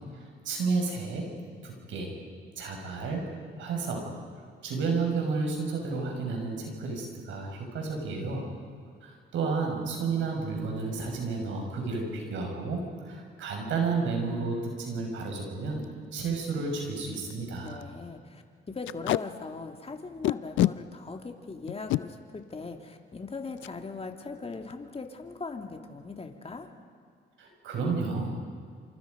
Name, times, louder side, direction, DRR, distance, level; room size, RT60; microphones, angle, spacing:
voice 1, 0.1-1.3 1.6-2.1 2.6-4.1 4.6-8.5 9.0-17.8 27.4-28.4, right 4 dB, 80° right, 1 dB, 6.3 m, -31 dB
Packing tape duct tape, 15.2-15.4 15.8-15.9 16.2-16.3 16.8-16.9 17.1-17.3 17.7-17.8 18.8-19.2 20.2-20.7 21.7-22.0 23.6-23.7 24.1-24.3 24.5-24.9, left 15 dB, 80° left, 0.5 m, -27 dB
voice 2, 17.6-26.7, left 3 dB, 30° left, 4 dB, 2.9 m, -40 dB
27.5 x 26.5 x 5.4 m, 2.2 s
supercardioid pair, 65°, 20 cm